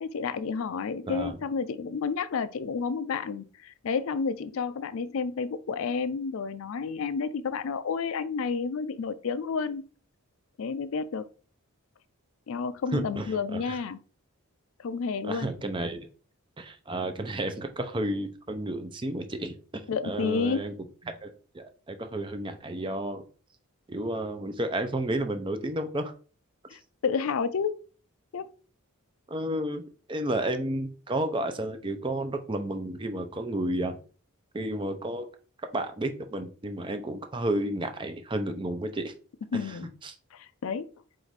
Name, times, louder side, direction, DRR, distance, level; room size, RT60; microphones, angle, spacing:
voice 1, 0.0-9.8 10.6-11.3 12.5-14.0 14.8-15.5 19.9-20.7 26.7-27.7 28.3-28.5 39.5-39.9 40.3-40.9, left 5 dB, 65° left, 0.4 m, -30 dB
voice 2, 1.1-1.4 12.9-13.8 15.2-16.1 16.6-20.7 21.1-23.2 23.9-26.1 29.3-29.8 30.1-34.0 34.5-35.3 35.7-39.1 40.0-40.1, right 1 dB, 20° right, 0.5 m, -32 dB
4.6 x 2.5 x 4.0 m
head